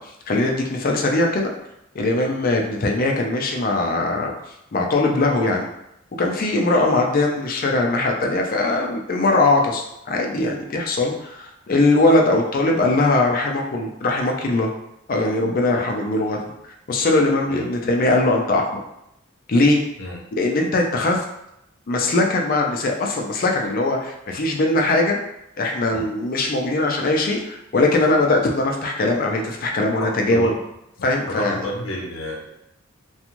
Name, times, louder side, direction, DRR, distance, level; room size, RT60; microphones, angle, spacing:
voice 1, 0.0-1.5 1.9-4.3 4.7-5.7 6.2-14.7 15.1-16.4 16.6-18.8 19.5-19.8 20.3-21.2 21.9-25.2 25.6-30.6 31.0-31.6, left 2 dB, 45° left, 1 dB, 0.4 m, -20 dB
voice 2, 31.3-32.5, left 1 dB, 80° left, -2 dB, 0.6 m, -30 dB
2.5 x 2.3 x 2.9 m, 0.82 s
head